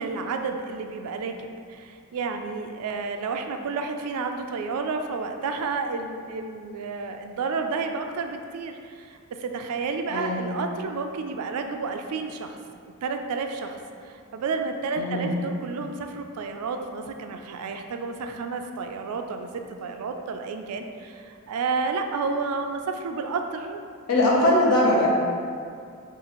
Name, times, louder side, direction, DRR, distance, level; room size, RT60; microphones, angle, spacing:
voice 1, 0.0-1.4 1.7-12.6 13.0-13.8 14.0-23.8 24.3-24.7, right 4 dB, 85° right, 5 dB, 0.4 m, -31 dB
voice 2, 10.1-10.4 15.0-15.4 24.1-25.1, left 1 dB, 80° left, -3 dB, 0.8 m, -21 dB
5.4 x 2.4 x 3.0 m, 2.2 s
head